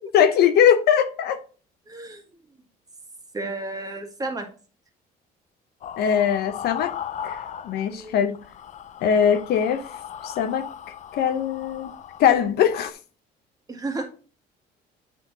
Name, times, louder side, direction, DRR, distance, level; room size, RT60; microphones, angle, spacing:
voice 1, 0.1-1.4 6.0-6.9 7.2-7.4 7.6-8.4 9.0-9.8 10.2-10.6 11.1-11.9 12.2-12.9, left 8 dB, 70° left, 0.9 m, -20 dB
voice 2, 1.9-2.2 3.3-4.5 7.9-8.2 13.7-14.0, right 2 dB, 20° right, 1.5 m, -32 dB
sound 1, 5.8-8.1 8.3-12.9, left 9 dB, 45° left, 0.5 m, -37 dB
8.5 x 4.4 x 3.9 m
cardioid pair, 110°, 17 cm